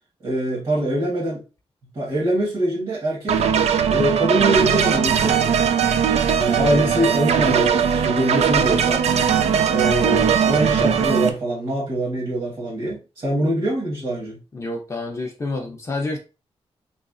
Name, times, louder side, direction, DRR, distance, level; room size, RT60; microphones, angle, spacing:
voice 1, 0.2-1.4 1.9-3.4 3.9-5.6 6.4-9.0 9.7-14.4, right 1 dB, 50° right, 1.3 m, -23 dB
sound 1, 3.3-11.3, right 7 dB, 90° right, 0.4 m, -19 dB
voice 2, 14.5-16.2, left 2 dB, 30° left, 0.5 m, -28 dB
3.4 x 3.1 x 2.4 m
wide cardioid pair, 155°, 11 cm